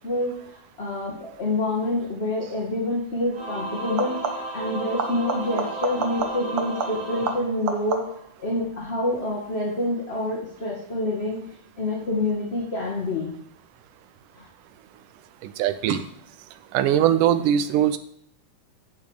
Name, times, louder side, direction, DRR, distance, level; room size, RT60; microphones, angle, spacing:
voice 1, 0.0-8.1 8.4-11.4 11.8-13.3 14.3-14.5, left 2 dB, 25° left, -4 dB, 1.5 m, -27 dB
sound 1, 2.4-2.7 3.8-4.6 5.0-8.4 13.8-14.4 15.9-16.0, right 6 dB, 65° right, 1.4 m, -31 dB
Singing / Musical instrument, 3.3-8.2, right 2 dB, 40° right, 4.1 m, -34 dB
voice 2, 15.4-16.0 16.7-18.0, right 10 dB, 85° right, 11 dB, 2.3 m, -21 dB
8.5 x 6.5 x 8.1 m, 0.68 s
omnidirectional pair, 3.6 m